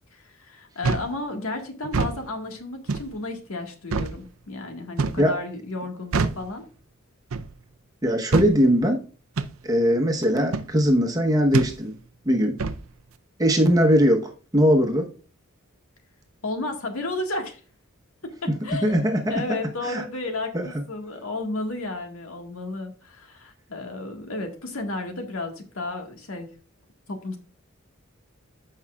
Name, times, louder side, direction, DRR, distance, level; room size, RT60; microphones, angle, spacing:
voice 1, 0.1-6.6 16.4-17.6 18.2-18.3 18.6-26.5 27.1-27.4, left 2 dB, 85° left, 1.8 m, -33 dB
sound 1, 0.8-1.1 1.8-2.2 2.9-3.1 3.9-4.2 5.0-5.3 6.1-6.4 7.3-7.5 8.3-8.5 9.4-9.5 10.5-10.7 11.5-11.8 12.6-12.8, right 4 dB, 80° right, 0.6 m, -25 dB
voice 2, 8.0-9.0 9.6-11.9 12.2-12.6 13.4-15.1 18.8-19.4 19.8-20.0 20.5-20.7, equal, 20° right, 1.1 m, -20 dB
14.0 x 5.6 x 2.4 m
head